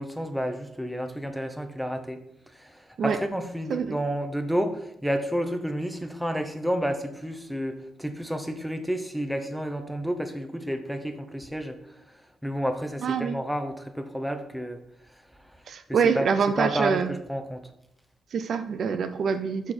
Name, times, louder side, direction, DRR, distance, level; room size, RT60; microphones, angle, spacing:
voice 1, 0.0-2.2 2.5-11.8 12.4-14.8 15.4-15.5 15.9-17.7, equal, ahead, 7 dB, 0.8 m, -30 dB
voice 2, 13.0-13.3 15.7-17.1 18.3-19.7, right 6 dB, 55° right, 10 dB, 0.5 m, -25 dB
11.5 x 4.5 x 4.3 m, 0.81 s
cardioid pair, 130°, 0 cm